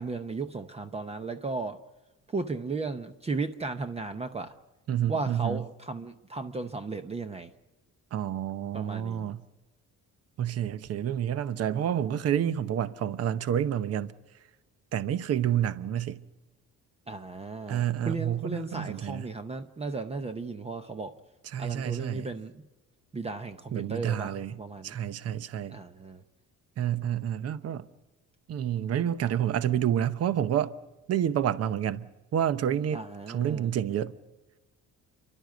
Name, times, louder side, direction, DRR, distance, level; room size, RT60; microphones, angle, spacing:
voice 1, 0.0-1.8 2.3-4.6 5.1-7.5 8.7-9.3 17.1-21.1 21.6-22.6 23.1-25.0 25.7-26.2 32.9-33.7, right 3 dB, 20° right, 0.7 m, -35 dB
voice 2, 4.9-5.6 8.1-9.4 10.4-14.1 14.9-16.2 17.7-19.3 21.5-22.3 23.7-24.6 24.8-25.8 26.8-27.8 28.5-30.7 31.1-33.0 33.3-34.1, right 10 dB, 50° right, 0.9 m, -29 dB
30.0 x 12.0 x 9.3 m
cardioid pair, 160°, 32 cm